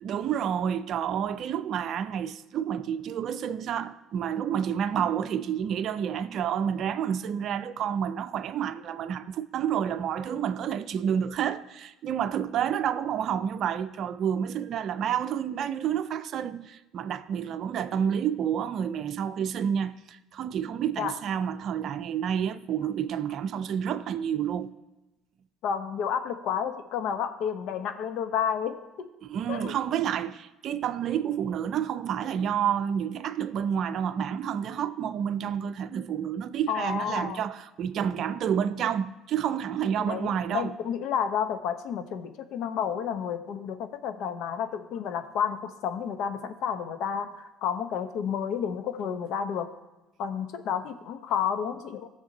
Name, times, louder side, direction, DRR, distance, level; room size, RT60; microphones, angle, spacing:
voice 1, 0.0-24.7 29.2-40.7, right 8 dB, 60° right, 0.6 m, -29 dB
voice 2, 25.6-29.1 29.5-29.7 36.7-37.4 40.0-49.7 50.2-52.1, left 8 dB, 70° left, 0.9 m, -31 dB
16.5 x 6.7 x 2.9 m
supercardioid pair, 80°, 0 cm